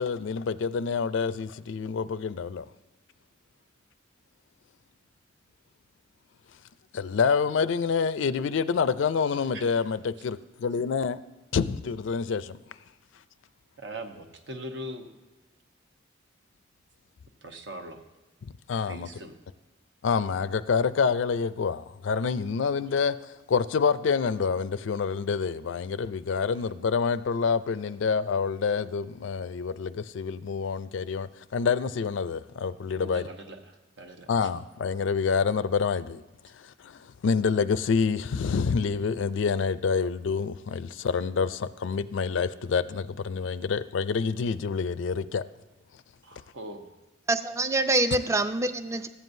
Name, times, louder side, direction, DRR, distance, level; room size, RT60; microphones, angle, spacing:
voice 1, 0.0-2.7 6.9-11.2 11.5-12.6 18.7-19.1 20.0-33.3 34.3-36.2 36.5-45.4, left 5 dB, 70° left, 0.4 m, -27 dB
voice 2, 13.8-15.1 17.4-18.0 18.9-19.3 32.9-34.3 46.2-46.8, right 1 dB, 65° right, 0.9 m, -40 dB
voice 3, 47.3-49.1, right 2 dB, 15° right, 0.4 m, -25 dB
14.0 x 9.2 x 2.6 m
head